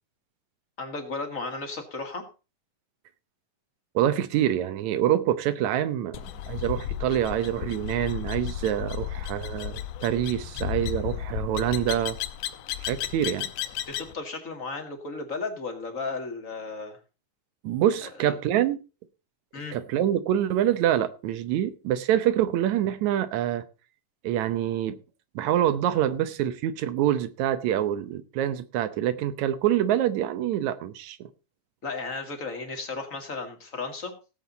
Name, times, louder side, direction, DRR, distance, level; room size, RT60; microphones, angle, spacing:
voice 1, 0.8-2.3 13.9-17.0 18.2-18.3 19.5-19.8 31.8-34.1, left 3 dB, 30° left, 2.2 m, -34 dB
voice 2, 4.0-12.2 12.8-13.5 17.6-18.8 19.7-23.6 24.2-25.0 25.4-31.3, right 11 dB, 80° right, 2.1 m, -26 dB
sound 1, 6.1-14.1, left 11 dB, 70° left, 1.9 m, -34 dB
17.5 x 7.8 x 4.0 m
omnidirectional pair, 3.3 m